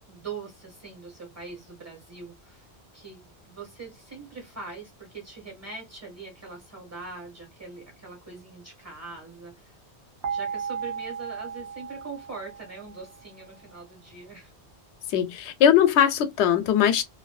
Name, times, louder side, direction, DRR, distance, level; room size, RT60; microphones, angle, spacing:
voice 1, 0.1-2.7 2.9-9.8 10.3-14.5, right 4 dB, 15° right, 1.5 m, -42 dB
sound 1, 10.2-13.2, right 6 dB, 70° right, 0.9 m, -35 dB
voice 2, 15.1-17.0, left 9 dB, 90° left, 0.9 m, -20 dB
2.6 x 2.6 x 2.3 m
omnidirectional pair, 1.1 m